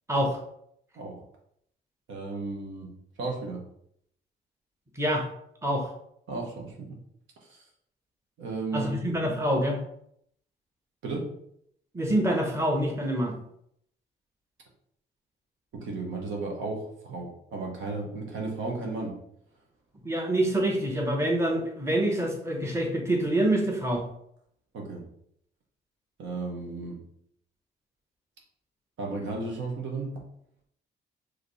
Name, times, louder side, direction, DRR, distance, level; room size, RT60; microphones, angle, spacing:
voice 1, 0.1-0.4 5.0-5.2 5.6-5.9 8.7-9.8 11.9-13.3 20.0-24.0, right 1 dB, 15° right, 1 dB, 1.0 m, -26 dB
voice 2, 2.1-2.9 3.2-3.6 6.3-7.0 7.5-7.6 8.4-8.9 11.0-11.4 15.7-19.1 24.7-25.0 26.2-27.0 29.0-30.2, right 3 dB, 75° right, 0 dB, 1.3 m, -34 dB
5.0 x 3.1 x 3.2 m, 0.70 s
cardioid pair, 90°, 20 cm